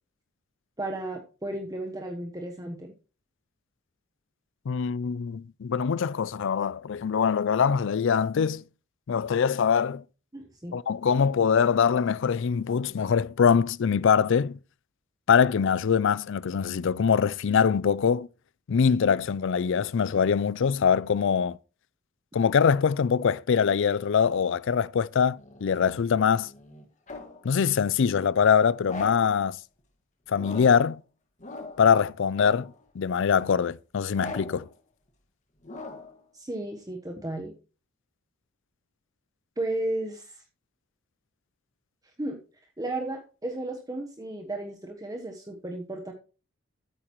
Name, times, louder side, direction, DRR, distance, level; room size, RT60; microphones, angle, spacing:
voice 1, 0.8-2.9 10.3-10.8 36.3-37.5 39.6-40.4 42.2-42.4 42.8-46.1, right 1 dB, 15° right, 1.1 m, -34 dB
voice 2, 4.7-8.6 9.1-10.0 10.7-14.6 15.3-18.3 18.7-21.6 22.3-26.5 27.4-29.6 30.3-31.0 31.8-34.7, left 6 dB, 60° left, 0.4 m, -23 dB
sound 1, 25.4-27.5 28.8-29.4 30.3-30.9 31.4-31.9 32.4-32.8 34.1-34.7 35.6-36.2, left 2 dB, 35° left, 1.9 m, -41 dB
13.0 x 8.7 x 3.1 m
head